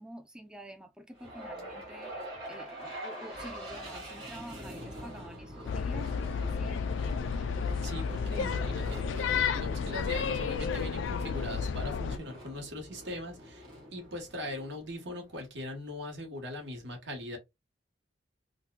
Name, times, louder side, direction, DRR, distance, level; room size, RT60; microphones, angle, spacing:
voice 1, 0.0-2.2 2.5-7.0, right 1 dB, 5° right, 0.4 m, -48 dB
sound 1, 1.2-15.4, equal, 25° right, 1.5 m, -45 dB
sound 2, 5.7-12.2, left 6 dB, 85° left, 0.3 m, -32 dB
voice 2, 6.6-7.0 7.6-13.6 13.9-17.4, left 1 dB, 75° right, 1.2 m, -41 dB
3.9 x 2.2 x 2.3 m
head